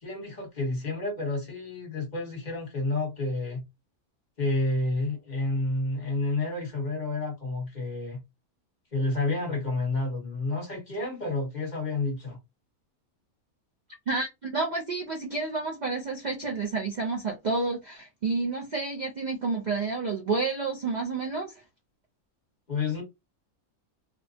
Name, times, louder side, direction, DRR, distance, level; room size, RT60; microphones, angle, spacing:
voice 1, 0.0-3.6 4.4-8.2 8.9-12.4 22.7-23.0, left 2 dB, 30° left, 1.2 m, -30 dB
voice 2, 14.1-21.5, right 3 dB, 75° right, 0.4 m, -30 dB
3.0 x 2.2 x 2.7 m
omnidirectional pair, 1.6 m